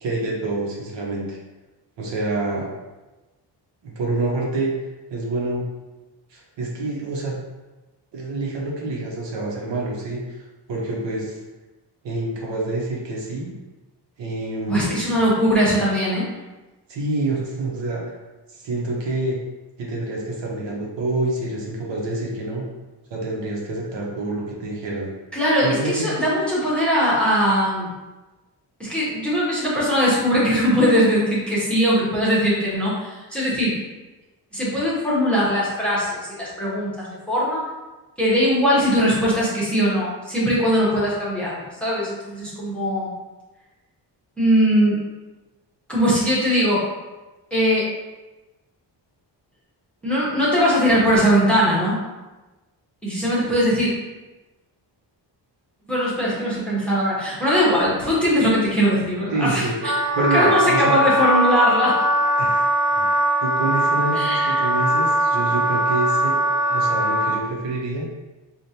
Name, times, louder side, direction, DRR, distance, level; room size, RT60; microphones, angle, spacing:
voice 1, 0.0-1.4 2.0-2.7 3.8-4.7 5.1-5.6 6.3-7.4 8.1-10.4 10.7-11.4 12.0-13.5 14.2-15.0 16.9-18.0 18.5-19.4 19.8-22.7 23.1-25.1 25.6-26.2 59.3-59.7 60.1-61.0 62.4-63.1 63.4-66.4 66.7-68.1, right 2 dB, 80° right, -3 dB, 1.0 m, -27 dB
voice 2, 14.7-16.3 25.3-27.9 28.8-33.8 34.5-37.6 38.2-43.1 44.4-45.0 45.9-46.8 47.5-47.9 50.0-52.0 53.0-53.9 55.9-59.9 60.2-62.0 64.1-64.7, equal, 5° left, -8 dB, 1.0 m, -20 dB
Wind instrument woodwind instrument, 59.8-67.4, right 1 dB, 40° right, 0.8 m, -21 dB
5.0 x 2.5 x 2.8 m, 1.1 s
wide cardioid pair, 165°, 43 cm